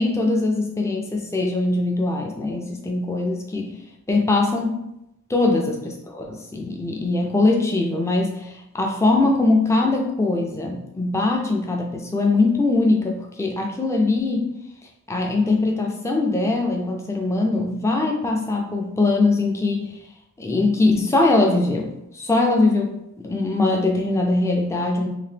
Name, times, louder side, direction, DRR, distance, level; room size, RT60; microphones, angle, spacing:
voice 1, 0.0-3.7 4.1-4.8 5.3-5.8 6.1-14.5 15.1-19.9 20.4-25.1, left 2 dB, 10° left, 1 dB, 0.3 m, -21 dB
2.8 x 2.0 x 3.2 m, 0.85 s
head